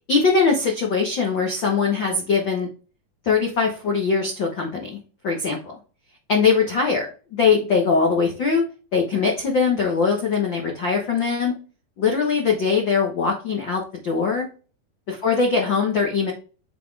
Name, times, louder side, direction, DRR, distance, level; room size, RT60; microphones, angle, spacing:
voice 1, 0.1-2.7 3.2-5.0 5.2-5.8 6.3-7.1 7.3-8.7 8.9-11.5 12.0-14.5 15.1-16.3, left 5 dB, 90° left, 0 dB, 1.0 m, -21 dB
7.5 x 4.3 x 3.3 m, 0.36 s
omnidirectional pair, 4.2 m